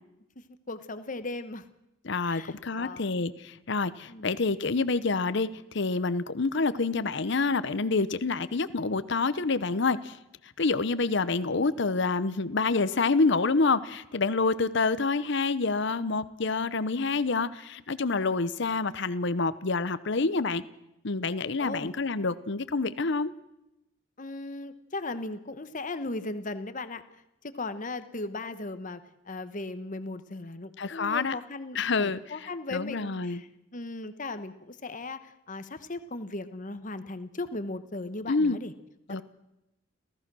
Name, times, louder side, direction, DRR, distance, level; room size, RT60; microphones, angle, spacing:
voice 1, 0.7-1.7 2.2-3.1 4.1-4.4 21.6-21.9 24.2-27.0 27.5-38.7 39.1-39.2, left 2 dB, 40° left, 11 dB, 1.2 m, -37 dB
voice 2, 2.0-10.2 10.6-20.6 21.0-23.3 30.8-31.3 31.7-32.2 32.7-33.4 38.3-38.6 39.1-39.2, left 3 dB, 60° left, 14 dB, 0.8 m, -27 dB
29.5 x 14.5 x 6.2 m, 0.90 s
head